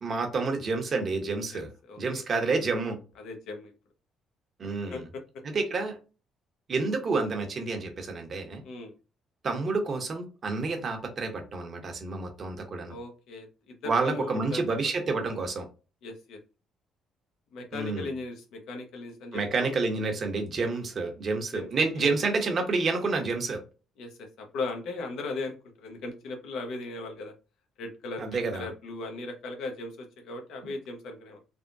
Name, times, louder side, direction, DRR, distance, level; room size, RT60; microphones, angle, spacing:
voice 1, 0.0-1.7 2.0-3.0 4.6-5.1 5.5-6.0 6.7-8.6 9.4-13.0 13.9-15.7 17.7-18.1 19.3-23.6 28.2-28.7 30.6-30.7, right 3 dB, 45° right, 0.9 m, -29 dB
voice 2, 1.5-2.0 3.2-3.7 4.9-5.2 8.6-8.9 12.9-14.8 16.0-16.4 17.5-19.7 21.5-21.7 22.0-22.1 24.0-27.3 27.8-31.4, left 3 dB, 75° left, 0.8 m, -38 dB
3.5 x 2.1 x 2.5 m
supercardioid pair, 75°, 0 cm